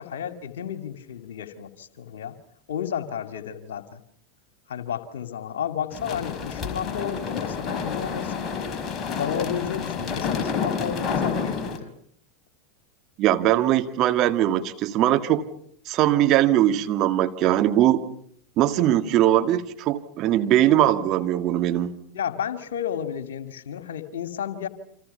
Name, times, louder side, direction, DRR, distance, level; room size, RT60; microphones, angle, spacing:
voice 1, 0.0-2.3 2.7-4.0 4.7-8.6 9.2-11.9 22.1-24.7, left 9 dB, 70° left, 10 dB, 2.4 m, -32 dB
sound 1, 5.9-11.8, left 5 dB, 30° left, 4.7 m, -29 dB
voice 2, 13.2-15.4 15.9-18.0 18.6-21.9, right 12 dB, 45° right, 7 dB, 2.0 m, -21 dB
29.5 x 27.0 x 5.7 m, 0.64 s
figure-of-eight pair, 85°, 0 cm